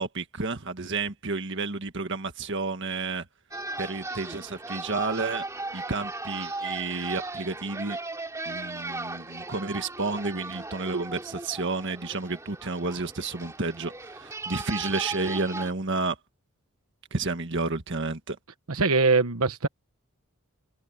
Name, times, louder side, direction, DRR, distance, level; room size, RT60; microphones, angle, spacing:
voice 1, 0.0-3.2 3.8-5.4 5.7-8.0 8.5-16.2 17.1-18.4, right 3 dB, 55° right, 1.6 m, -31 dB
sound 1, 3.5-15.7, right 2 dB, 15° right, 3.1 m, -37 dB
voice 2, 18.7-19.7, right 3 dB, 80° right, 1.2 m, -22 dB
head